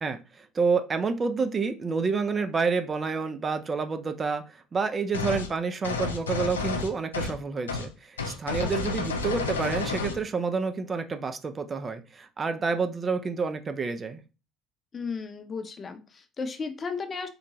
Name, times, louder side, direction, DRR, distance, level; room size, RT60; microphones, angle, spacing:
voice 1, 0.0-14.2, right 4 dB, 35° right, 8 dB, 0.4 m, -29 dB
sound 1, 5.1-5.5 5.8-7.4 7.7-7.9 8.2-10.2, left 4 dB, 90° left, 0.3 m, -30 dB
voice 2, 8.6-9.0 14.9-17.3, left 5 dB, 35° left, 7 dB, 0.6 m, -35 dB
3.9 x 2.2 x 2.9 m, 0.31 s
hypercardioid pair, 60°, 0 cm